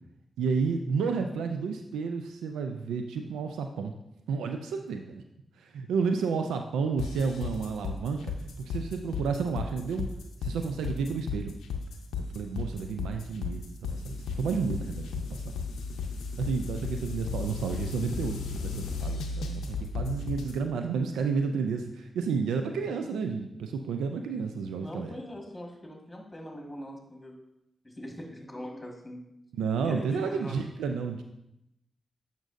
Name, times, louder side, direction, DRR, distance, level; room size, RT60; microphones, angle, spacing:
voice 1, 0.4-3.9 4.3-5.2 5.6-8.3 8.6-10.1 10.4-11.6 12.3-15.6 16.4-19.7 19.9-25.2 29.6-31.2, right 5 dB, 90° right, 5 dB, 0.3 m, -31 dB
sound 1, 7.0-20.6, left 4 dB, 90° left, 0.6 m, -34 dB
voice 2, 24.8-27.4 27.8-29.3 29.8-30.6, equal, 20° left, 1 dB, 1.6 m, -42 dB
9.0 x 5.2 x 2.5 m, 0.83 s
supercardioid pair, 40°, 0 cm